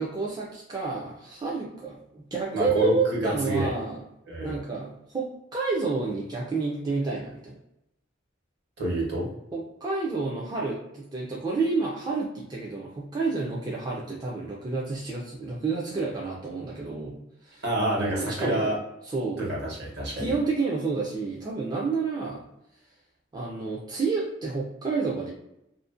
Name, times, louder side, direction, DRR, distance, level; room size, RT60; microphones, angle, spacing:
voice 1, 0.0-4.0 4.4-7.6 9.5-17.6 17.9-18.7 19.1-19.4 20.2-22.4 23.3-25.3, right 4 dB, 20° right, -4 dB, 0.3 m, -30 dB
voice 2, 2.5-3.7 4.3-4.6 8.8-9.3 17.6-18.8 19.4-20.3, right 1 dB, 60° right, -3 dB, 0.9 m, -28 dB
2.5 x 2.0 x 2.4 m, 0.82 s
head